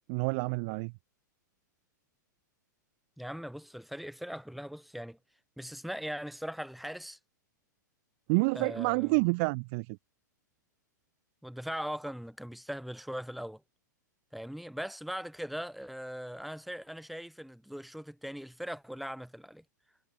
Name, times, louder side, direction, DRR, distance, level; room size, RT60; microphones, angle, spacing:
voice 1, 0.1-0.9 8.3-9.9, right 32 dB, 40° right, 0.6 m, -28 dB
voice 2, 3.2-5.2 5.6-7.2 8.5-9.2 11.4-13.6 14.3-19.6, equal, ahead, 2.7 m, -40 dB
figure-of-eight pair, 105°, 10 cm